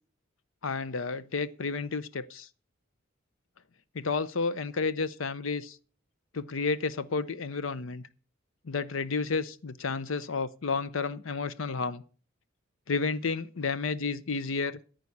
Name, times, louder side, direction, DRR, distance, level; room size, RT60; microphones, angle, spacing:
voice 1, 0.6-2.5 3.9-5.8 6.3-8.0 8.7-12.0 12.9-14.8, left 4 dB, 70° left, 0.7 m, -31 dB
14.0 x 5.3 x 8.4 m
head